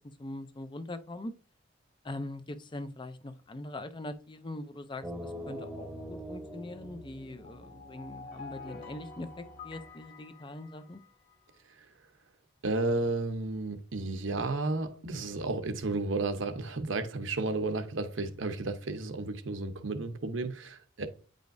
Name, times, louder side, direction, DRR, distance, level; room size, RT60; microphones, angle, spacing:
voice 1, 0.0-1.3 2.0-11.0, left 1 dB, 25° left, 0.5 m, -42 dB
sound 1, 5.0-9.9, equal, 5° right, 1.0 m, -44 dB
sound 2, 7.4-11.4, left 4 dB, 40° left, 1.3 m, -48 dB
voice 2, 12.6-21.1, right 3 dB, 75° right, 0.9 m, -32 dB
9.2 x 5.1 x 2.6 m
head